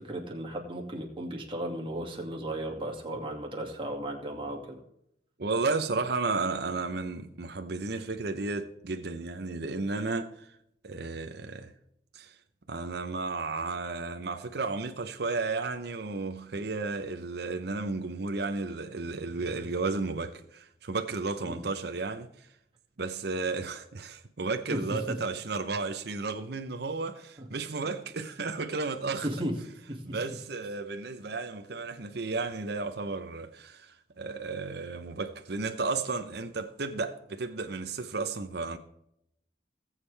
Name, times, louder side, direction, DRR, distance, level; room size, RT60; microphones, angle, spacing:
voice 1, 0.1-4.8 21.5-21.6 24.7-24.8 29.2-29.5 29.9-30.0, right 1 dB, 30° right, 2.2 m, -35 dB
voice 2, 5.4-10.5 10.8-11.7 12.1-12.3 12.7-22.3 23.0-29.3 30.1-38.8, right 3 dB, 65° right, 0.8 m, -33 dB
19.0 x 7.4 x 3.4 m
head